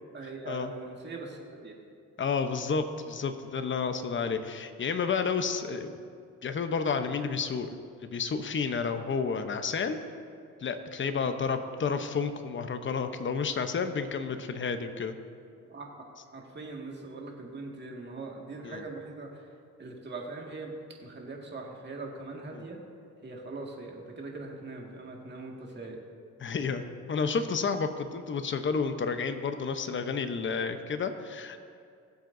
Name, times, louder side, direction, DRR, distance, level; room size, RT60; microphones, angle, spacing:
voice 1, 0.1-1.7 11.1-11.3 15.7-15.9 16.3-22.8 23.2-26.0, right 3 dB, 35° right, 0 dB, 2.0 m, -41 dB
voice 2, 2.2-6.0 6.4-10.0 10.6-15.1 18.6-18.8 22.5-22.6 26.4-31.6, left 5 dB, 40° left, 8 dB, 0.9 m, -31 dB
20.5 x 7.8 x 2.7 m, 2.3 s
cardioid pair, 90°, 30 cm